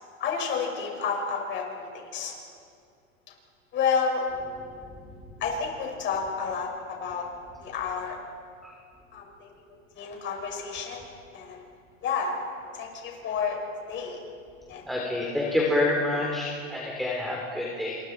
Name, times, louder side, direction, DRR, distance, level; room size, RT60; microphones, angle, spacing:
voice 1, 0.2-2.3 3.7-4.2 5.4-7.2 7.6-8.2 9.1-9.6 9.9-11.0 11.3-11.6 12.0-12.3 12.7-13.6 13.9-14.2 14.7-14.8 15.2-15.3 16.0-16.2, left 6 dB, 30° left, 0 dB, 6.5 m, -30 dB
voice 2, 14.9-18.0, left 2 dB, ahead, -2 dB, 3.5 m, -27 dB
30.0 x 27.5 x 4.8 m, 2.2 s
supercardioid pair, 145°, 39 cm